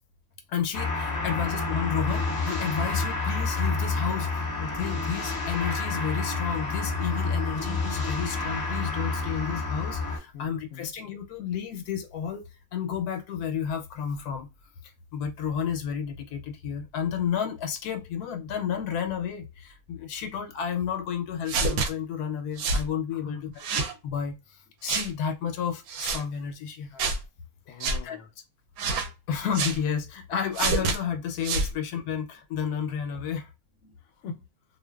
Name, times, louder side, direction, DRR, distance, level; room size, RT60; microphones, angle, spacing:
voice 1, 0.5-12.4 12.7-14.5 15.1-24.4 24.8-27.0 28.0-28.2 29.3-33.5, left 7 dB, 80° left, 1.1 m, -31 dB
sound 1, 0.7-10.2, left 3 dB, 25° left, 0.5 m, -29 dB
voice 2, 10.3-10.9 23.1-23.5 27.7-28.3 33.8-34.5, left 6 dB, 65° left, 0.8 m, -43 dB
sound 2, 21.5-21.9 22.6-22.9 23.6-23.9 24.9-25.1 25.9-26.2 27.0-27.2 27.8-28.0 28.8-29.1 29.5-29.8 30.5-31.0 31.4-31.7, right 4 dB, 75° right, 1.0 m, -27 dB
2.5 x 2.4 x 2.2 m
omnidirectional pair, 1.6 m